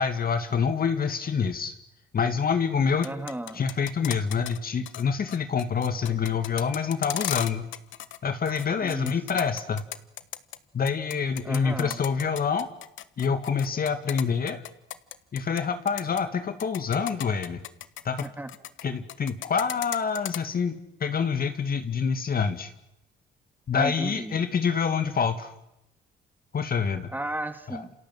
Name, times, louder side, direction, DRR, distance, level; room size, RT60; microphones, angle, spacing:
voice 1, 0.0-1.7 2.1-3.1 3.5-7.7 8.2-9.8 10.7-12.7 13.2-14.6 15.3-17.6 18.0-18.2 18.8-22.7 23.7-25.5 26.5-27.1 27.7-27.8, left 6 dB, 50° left, 9 dB, 2.1 m, -26 dB
sound 1, 2.9-4.6 4.9-5.0 5.3-8.2 8.5-10.6 10.9-15.6 15.9-16.2 16.6-18.8 19.1-20.4, left 12 dB, 75° left, 1.3 m, -35 dB
voice 2, 3.0-3.6 8.8-9.1 11.4-12.0 18.2-18.5 23.7-24.4 27.1-27.9, right 1 dB, 10° right, 7 dB, 3.1 m, -34 dB
28.5 x 27.0 x 7.8 m, 0.84 s
cardioid pair, 90°, 20 cm